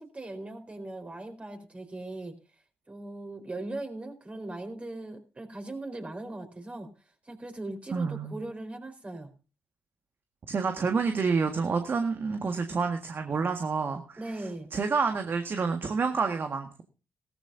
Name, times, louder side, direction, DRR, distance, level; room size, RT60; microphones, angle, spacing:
voice 1, 0.0-2.3 2.9-6.9 7.2-9.3 14.2-14.7, right 2 dB, 25° right, 6 dB, 4.3 m, -39 dB
voice 2, 7.9-8.4 10.5-16.8, right 5 dB, 45° right, 6 dB, 1.7 m, -29 dB
17.5 x 14.0 x 2.7 m, 0.34 s
hypercardioid pair, 50°, 5 cm